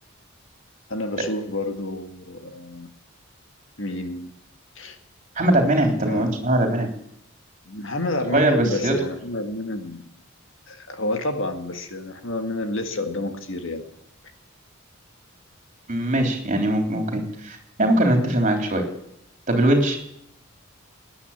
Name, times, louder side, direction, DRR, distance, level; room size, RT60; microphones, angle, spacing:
voice 1, 0.9-2.9 3.8-4.3 4.8-5.0 6.1-6.4 7.7-10.0 10.7-13.8, left 2 dB, 60° left, 6 dB, 1.9 m, -29 dB
voice 2, 5.4-6.9 8.2-8.9 15.9-18.9 19.5-20.0, right 1 dB, 35° right, 3 dB, 3.6 m, -21 dB
19.0 x 10.0 x 7.4 m, 0.76 s
head